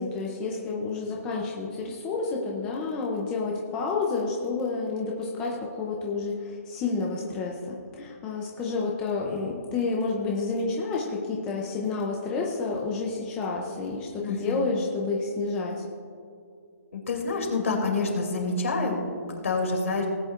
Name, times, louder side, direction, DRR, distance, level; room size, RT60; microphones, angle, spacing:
voice 1, 0.0-15.8, left 4 dB, 10° left, -2 dB, 0.5 m, -30 dB
voice 2, 14.2-14.7 16.9-20.1, left 3 dB, 55° left, 2 dB, 2.7 m, -28 dB
18.5 x 9.4 x 2.5 m, 2.4 s
hypercardioid pair, 180°, 9 cm